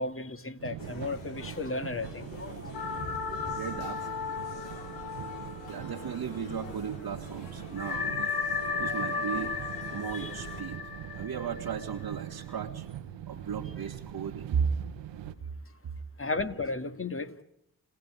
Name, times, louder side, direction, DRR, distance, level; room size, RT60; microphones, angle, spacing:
voice 1, 0.0-2.7 3.3-3.4 10.1-10.3 16.2-17.3, left 3 dB, 30° left, 2.3 m, -34 dB
sound 1, 0.6-15.3, right 11 dB, 80° right, 1.4 m, -42 dB
sound 2, 0.8-10.6, left 5 dB, 85° left, 3.3 m, -47 dB
sound 3, 2.7-6.7 7.0-7.1 7.8-12.4, left 5 dB, 55° left, 3.6 m, -35 dB
voice 2, 3.4-4.1 5.6-8.2 8.6-9.6 9.9-10.8 11.2-12.9 13.3-14.7, right 7 dB, 50° right, 1.6 m, -35 dB
29.5 x 17.0 x 9.5 m
hypercardioid pair, 45°, 44 cm